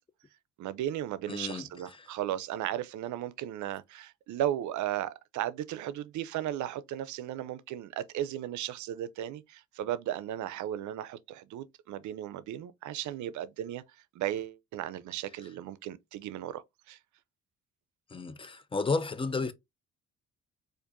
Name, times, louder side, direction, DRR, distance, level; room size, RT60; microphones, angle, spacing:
voice 1, 0.6-13.8 14.1-17.0, right 12 dB, 75° right, 0.5 m, -35 dB
voice 2, 1.3-1.7 2.0-2.1 18.1-19.5, left 4 dB, 20° left, 0.5 m, -32 dB
4.4 x 2.5 x 2.5 m
cardioid pair, 90°, 30 cm